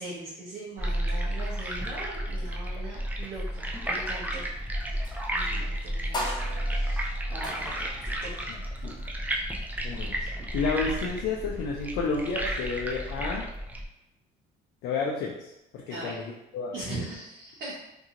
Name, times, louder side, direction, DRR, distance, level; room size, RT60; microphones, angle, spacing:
voice 1, 0.0-4.5 5.3-6.3 6.6-8.6 15.9-16.2 16.7-17.8, right 2 dB, 65° right, -7 dB, 0.9 m, -41 dB
sound 1, 0.8-13.8, right 1 dB, 10° right, 0.4 m, -32 dB
sound 2, 4.1-11.5, left 1 dB, 25° left, 0.7 m, -42 dB
voice 2, 8.5-9.0 9.8-10.2 10.5-13.5 14.8-17.0, left 4 dB, 80° left, -2 dB, 0.5 m, -31 dB
2.7 x 2.5 x 2.8 m, 0.88 s
cardioid pair, 110°, 17 cm